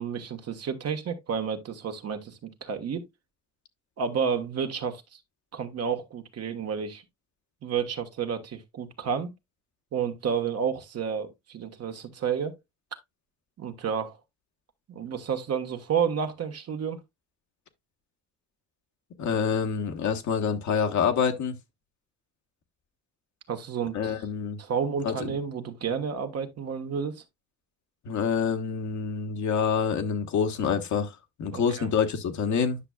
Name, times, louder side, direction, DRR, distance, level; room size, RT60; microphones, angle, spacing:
voice 1, 0.0-3.1 4.0-5.2 5.5-7.0 7.6-9.3 9.9-12.6 13.6-14.2 14.9-17.0 23.5-24.1 24.6-27.2 31.5-31.9, right 7 dB, 55° right, 1.4 m, -31 dB
voice 2, 19.2-21.6 23.9-24.6 25.0-25.3 28.0-32.8, left 6 dB, 70° left, 1.3 m, -27 dB
9.9 x 6.1 x 2.3 m
cardioid pair, 90°, 30 cm